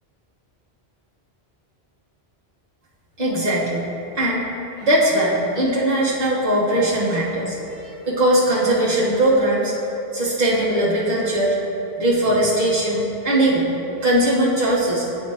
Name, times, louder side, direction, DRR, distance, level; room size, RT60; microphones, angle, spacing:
voice 1, 3.2-3.8 4.1-4.5 4.8-9.7 10.1-11.6 12.0-13.7 14.0-15.1, right 1 dB, 35° right, -9 dB, 1.5 m, -20 dB
9.9 x 4.3 x 2.9 m, 3.0 s
omnidirectional pair, 1.1 m